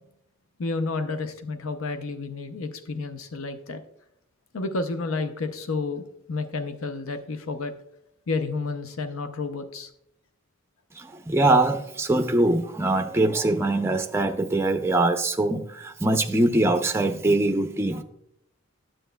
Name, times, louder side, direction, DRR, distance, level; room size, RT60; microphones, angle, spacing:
voice 1, 0.6-3.8 4.5-7.7 8.3-9.9, left 3 dB, 75° left, 0.6 m, -30 dB
voice 2, 10.9-18.0, right 2 dB, 10° right, 0.4 m, -23 dB
10.0 x 7.7 x 2.2 m
head